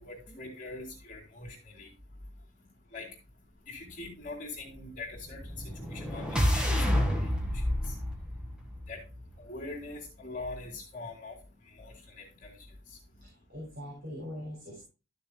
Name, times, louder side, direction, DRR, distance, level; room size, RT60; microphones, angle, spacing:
voice 1, 0.0-1.9 2.9-3.1 3.7-7.0 8.9-9.0 9.4-11.4 11.8-12.5, left 3 dB, 40° left, 0 dB, 3.3 m, -43 dB
sound 1, 5.2-9.4, equal, 5° right, 1.7 m, -29 dB
voice 2, 13.2-14.8, equal, 65° right, -4 dB, 4.1 m, -42 dB
13.5 x 6.7 x 2.2 m, 0.31 s
head